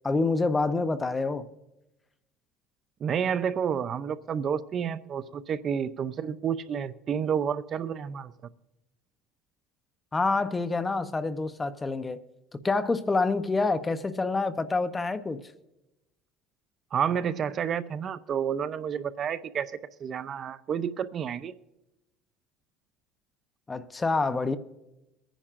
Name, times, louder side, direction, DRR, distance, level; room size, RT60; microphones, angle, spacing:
voice 1, 0.0-1.5 10.1-12.2 12.6-15.4 23.7-24.6, left 3 dB, 15° left, 0.7 m, -27 dB
voice 2, 3.0-8.3 16.9-19.7 20.0-21.5, right 8 dB, 40° right, 0.5 m, -30 dB
23.5 x 10.0 x 2.5 m
supercardioid pair, 115°, 0 cm